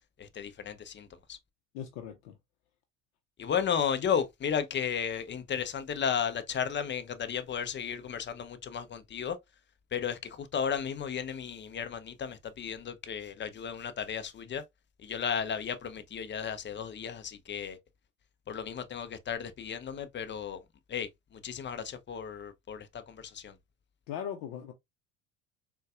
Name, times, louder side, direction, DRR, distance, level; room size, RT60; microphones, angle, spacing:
voice 1, 0.2-1.4 3.4-9.4 9.9-14.6 15.0-17.8 18.5-23.6, left 7 dB, 30° left, 0.6 m, -34 dB
voice 2, 1.7-2.4 24.1-24.7, left 9 dB, 70° left, 0.7 m, -39 dB
3.9 x 2.3 x 2.3 m
hypercardioid pair, 70°, 40 cm